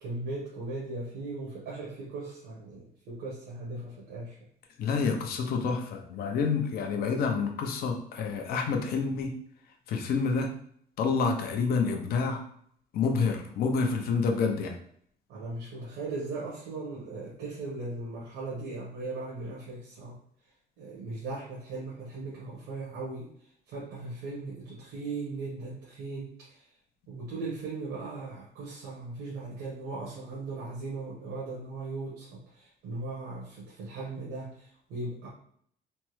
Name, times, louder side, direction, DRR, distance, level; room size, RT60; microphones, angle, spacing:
voice 1, 0.0-4.4 15.3-20.2 20.8-23.3 23.7-26.7 27.1-35.3, right 3 dB, 90° right, -5 dB, 1.0 m, -38 dB
voice 2, 4.8-9.4 9.9-10.5 11.0-12.4 12.9-14.7, left 5 dB, 65° left, 3 dB, 0.6 m, -28 dB
3.4 x 2.1 x 3.1 m, 0.65 s
cardioid pair, 110°, 17 cm